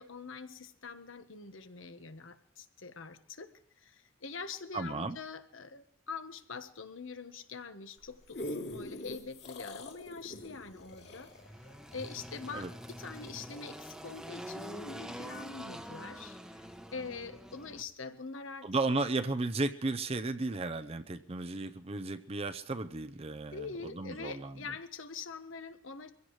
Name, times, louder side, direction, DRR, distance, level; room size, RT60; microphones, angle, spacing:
voice 1, 0.0-3.5 3.8-11.3 11.9-16.4 16.9-18.7 23.5-26.1, left 4 dB, 80° left, 9 dB, 1.2 m, -44 dB
voice 2, 4.7-5.2 12.5-12.7 18.6-24.5, right 3 dB, 30° right, 8 dB, 0.6 m, -34 dB
sound 1, 8.0-12.6 13.2-13.3, left 1 dB, 60° left, 2.7 m, -43 dB
Engine, 10.4-17.8, equal, 5° right, 0.9 m, -46 dB
23.5 x 16.0 x 3.2 m, 0.62 s
head